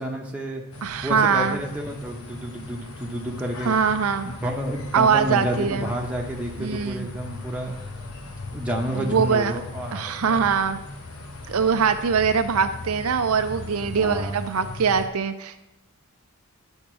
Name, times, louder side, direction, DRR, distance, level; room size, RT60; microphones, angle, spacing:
voice 1, 0.0-0.6 1.0-3.8 4.2-7.8 8.5-10.4 13.8-14.4, right 1 dB, 5° right, -1 dB, 1.0 m, -30 dB
sound 1, 0.7-15.1, left 2 dB, 80° left, 1.1 m, -38 dB
voice 2, 0.8-1.6 3.6-4.3 4.9-5.9 6.6-7.1 8.9-9.6 9.9-10.8 11.5-15.6, right 6 dB, 80° right, 9 dB, 0.5 m, -22 dB
10.5 x 3.6 x 6.1 m, 0.94 s
head